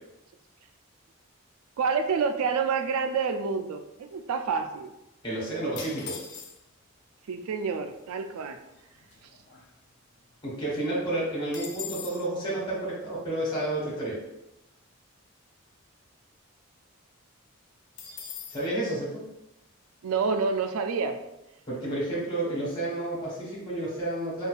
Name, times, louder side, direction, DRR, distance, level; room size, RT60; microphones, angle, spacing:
voice 1, 1.8-4.9 7.3-8.6 20.0-21.2, right 5 dB, 85° right, 7 dB, 0.3 m, -28 dB
voice 2, 5.2-6.2 10.4-14.2 18.5-19.2 21.7-24.5, right 1 dB, 20° left, -7 dB, 1.2 m, -30 dB
sound 1, 5.8-6.8 7.6-7.7 7.9-8.3 8.7-10.2 10.5-10.6 10.9-12.3 18.0-18.7, left 7 dB, 55° left, 0.5 m, -41 dB
5.2 x 2.3 x 2.4 m, 0.91 s
head